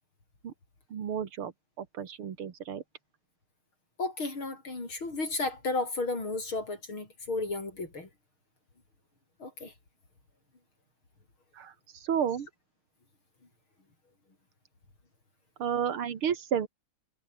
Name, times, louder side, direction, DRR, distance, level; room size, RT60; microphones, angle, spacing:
voice 1, 0.9-1.5 2.0-2.8 12.1-12.5 15.6-16.7, right 8 dB, 80° right, 2.7 m, -31 dB
voice 2, 4.0-8.1 9.4-9.7, left 3 dB, 70° left, 7.1 m, -33 dB
omnidirectional pair, 2.3 m